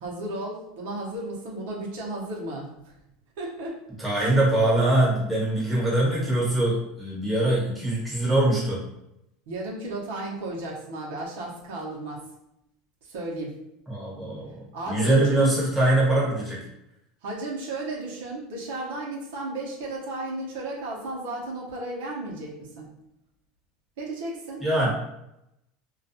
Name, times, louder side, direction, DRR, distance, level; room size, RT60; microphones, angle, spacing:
voice 1, 0.0-2.9 3.4-3.8 4.1-4.3 9.5-12.2 13.0-13.6 14.7-15.5 17.2-22.9 24.0-24.6, right 2 dB, 85° right, -3 dB, 0.7 m, -34 dB
voice 2, 4.0-8.8 13.9-16.6 24.6-24.9, right 1 dB, 5° right, -7 dB, 1.1 m, -23 dB
2.3 x 2.2 x 2.7 m, 0.84 s
supercardioid pair, 135°, 0 cm